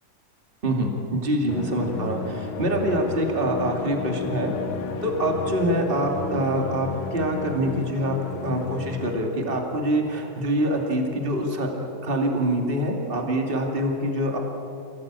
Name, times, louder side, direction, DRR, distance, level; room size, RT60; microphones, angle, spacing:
voice 1, 0.6-4.5 5.0-14.4, right 1 dB, 25° right, 2 dB, 2.6 m, -25 dB
sound 1, 1.5-9.2, left 6 dB, 85° left, 2.0 m, -33 dB
28.0 x 18.5 x 8.8 m, 3.0 s
omnidirectional pair, 2.1 m